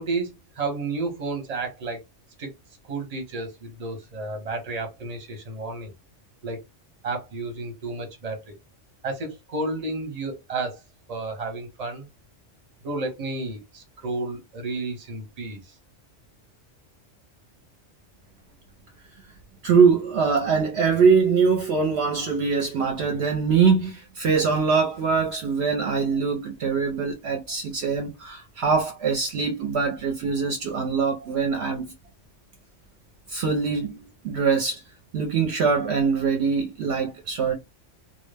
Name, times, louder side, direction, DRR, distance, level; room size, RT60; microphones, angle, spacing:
voice 1, 0.0-2.0 2.4-2.5 2.9-5.9 6.4-6.6 7.0-8.5 9.0-10.8 11.1-12.1 12.8-15.6, right 3 dB, 35° right, 0.8 m, -31 dB
voice 2, 19.6-31.9 33.3-34.8 35.1-37.5, right 5 dB, 65° right, 0.8 m, -23 dB
2.2 x 2.0 x 3.2 m
omnidirectional pair, 1.3 m